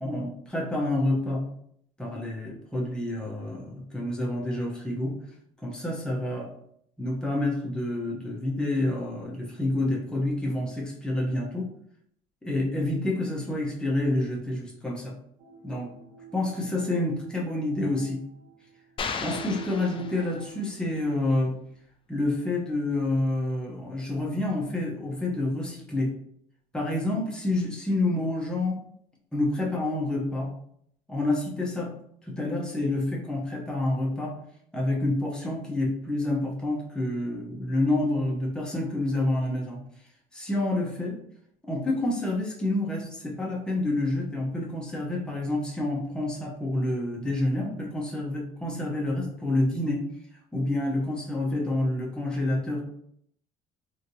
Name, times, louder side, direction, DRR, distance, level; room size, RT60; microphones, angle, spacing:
voice 1, 0.0-1.4 2.0-5.2 5.6-6.5 7.0-11.7 12.4-15.1 15.6-15.9 16.3-18.2 19.2-21.6 22.1-26.1 26.7-28.8 29.3-30.5 31.1-31.9 32.3-34.3 34.7-39.8 40.3-41.2 41.7-50.0 50.5-52.8, left 2 dB, 5° left, -3 dB, 0.8 m, -28 dB
sound 1, 15.4-20.6, right 4 dB, 55° right, 1.3 m, -46 dB
sound 2, 19.0-20.7, left 5 dB, 30° left, 0.4 m, -35 dB
3.2 x 2.7 x 2.7 m, 0.68 s
cardioid pair, 110°, 17 cm